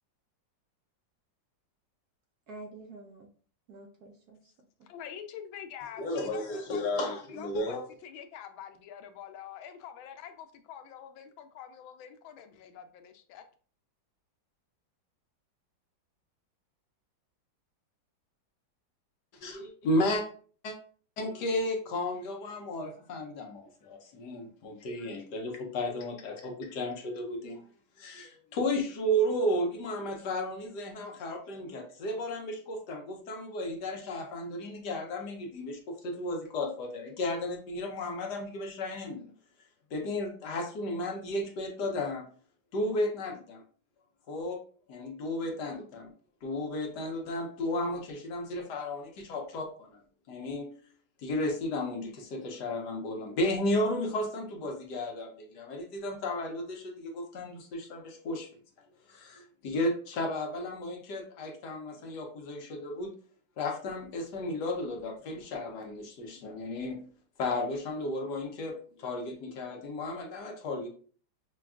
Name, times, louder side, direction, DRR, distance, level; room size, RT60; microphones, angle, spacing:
voice 1, 2.5-3.3 3.7-4.9, right 2 dB, 70° right, 1.0 m, -48 dB
voice 2, 4.9-13.4, left 9 dB, 90° left, 1.4 m, -46 dB
voice 3, 6.0-7.8 19.4-20.2 20.6-20.7 21.2-27.6 28.0-39.3 39.9-42.3 42.7-43.6 44.3-44.6 44.9-46.1 46.4-49.9 50.3-50.7 51.2-58.5 59.1-63.1 63.6-67.1 67.4-70.9, left 1 dB, 65° left, 1.2 m, -33 dB
6.0 x 2.3 x 2.4 m
omnidirectional pair, 2.1 m